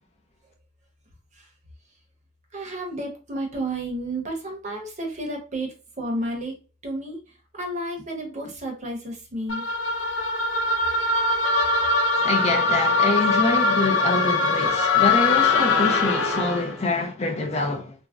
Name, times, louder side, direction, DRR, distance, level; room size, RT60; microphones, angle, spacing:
voice 1, 2.5-6.6 6.8-7.2 7.5-9.6, right 1 dB, 35° right, 0.7 m, -31 dB
sound 1, 9.5-16.7, left 3 dB, 70° left, 0.7 m, -22 dB
voice 2, 12.2-17.9, left 2 dB, 30° left, 0.4 m, -25 dB
2.5 x 2.0 x 3.4 m
head